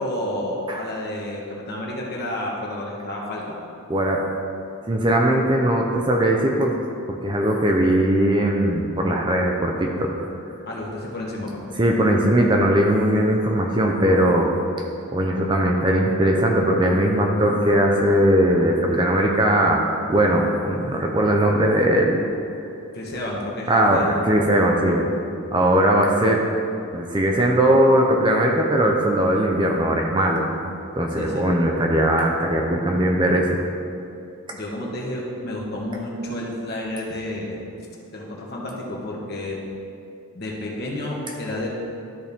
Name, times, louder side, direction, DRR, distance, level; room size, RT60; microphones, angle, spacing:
voice 1, 0.0-3.6 10.7-11.6 22.9-24.2 31.2-31.5 34.5-37.6 38.1-39.6 40.3-41.7, left 1 dB, 45° left, -3 dB, 1.3 m, -30 dB
voice 2, 3.9-4.2 4.9-6.8 7.2-10.1 11.8-14.5 15.1-19.8 20.1-22.2 23.7-25.1 25.5-26.4 26.9-30.4 30.9-33.6, right 1 dB, 20° right, 0 dB, 0.5 m, -19 dB
12.5 x 4.3 x 3.5 m, 2.6 s
head